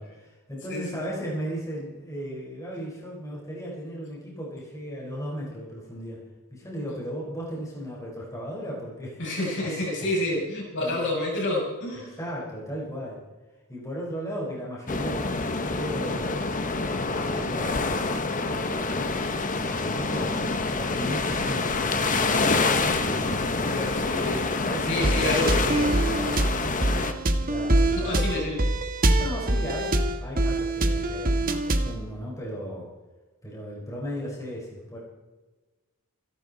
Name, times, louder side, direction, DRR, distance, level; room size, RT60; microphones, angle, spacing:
voice 1, 0.0-6.2 6.5-10.2 10.8-11.0 12.1-13.2 13.7-16.5 17.1-19.3 19.5-25.8 27.4-28.2 29.0-32.9 33.4-35.0, equal, 15° left, -4 dB, 4.5 m, -36 dB
voice 2, 0.7-1.0 9.2-12.1 23.7-24.5 24.9-25.9 27.9-28.7, left 1 dB, 55° left, -3 dB, 6.5 m, -29 dB
sound 1, 14.9-27.1, left 3 dB, 35° left, 1.3 m, -27 dB
sound 2, 25.0-32.0, right 1 dB, 40° right, 1.4 m, -24 dB
27.5 x 12.0 x 4.1 m, 1.2 s
head